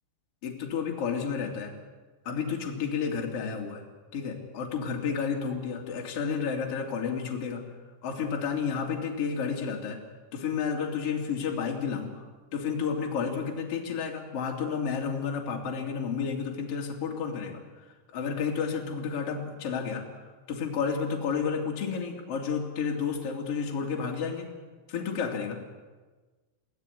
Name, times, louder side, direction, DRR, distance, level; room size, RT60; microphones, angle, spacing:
voice 1, 0.4-1.8 2.2-3.8 4.1-7.7 8.0-10.0 10.3-12.2 12.5-17.6 18.1-20.1 20.5-24.5 24.9-25.6, left 6 dB, 35° left, 0 dB, 2.7 m, -31 dB
22.0 x 16.0 x 9.4 m, 1.3 s
omnidirectional pair, 6.0 m